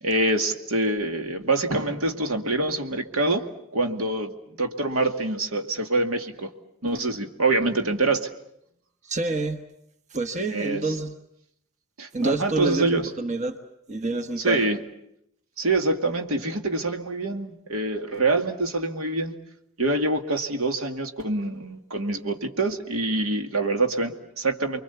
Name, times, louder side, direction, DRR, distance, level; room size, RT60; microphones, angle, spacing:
voice 1, 0.0-3.5 3.7-6.5 6.8-8.3 10.5-11.0 12.0-13.1 14.4-14.8 15.6-19.3 19.8-24.8, right 2 dB, 90° right, 5 dB, 2.3 m, -25 dB
voice 2, 9.1-9.6 10.1-11.1 12.1-13.6 13.9-14.6, right 2 dB, 35° right, 8 dB, 1.3 m, -27 dB
29.5 x 23.0 x 7.0 m, 0.77 s
head